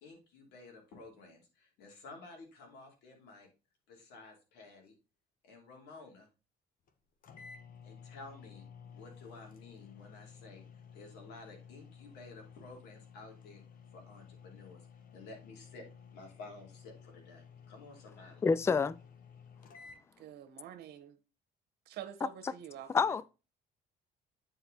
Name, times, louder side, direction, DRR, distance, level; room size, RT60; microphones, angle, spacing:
voice 1, 0.0-3.5 3.9-4.9 5.4-6.3 7.8-8.7 8.9-13.6 13.9-14.9 15.1-18.4, left 3 dB, 80° left, 2.9 m, -52 dB
sound 1, 6.9-7.0 7.2-20.0, left 6 dB, 55° left, 1.2 m, -54 dB
voice 2, 18.4-19.0 22.9-23.2, left 5 dB, 15° left, 0.3 m, -27 dB
voice 3, 20.2-21.2 21.8-23.2, right 10 dB, 75° right, 1.3 m, -47 dB
9.0 x 4.7 x 3.9 m
cardioid pair, 110°, 17 cm